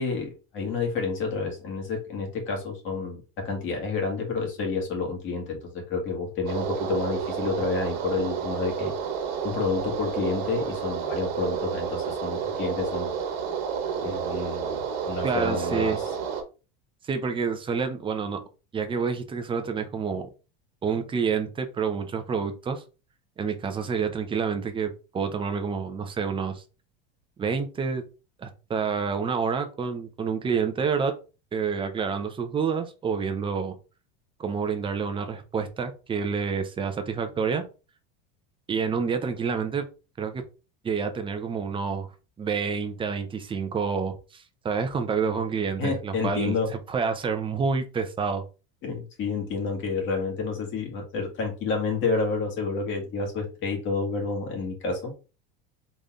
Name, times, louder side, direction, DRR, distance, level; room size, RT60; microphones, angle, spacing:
voice 1, 0.0-8.9 9.4-13.2 14.0-16.0 45.8-46.7 48.8-55.1, left 4 dB, 40° left, 2 dB, 2.0 m, -29 dB
sound 1, 6.5-16.4, right 7 dB, 80° right, 1.3 m, -30 dB
voice 2, 15.2-16.0 17.1-18.4 18.7-20.3 20.8-22.8 23.4-26.6 27.4-28.0 28.4-31.1 31.5-33.8 34.4-37.6 38.7-39.9 40.2-40.4 40.8-42.1 42.4-46.5 46.9-48.4, right 5 dB, 15° right, 7 dB, 0.7 m, -28 dB
4.2 x 3.3 x 3.7 m, 0.32 s
supercardioid pair, 140°, 29 cm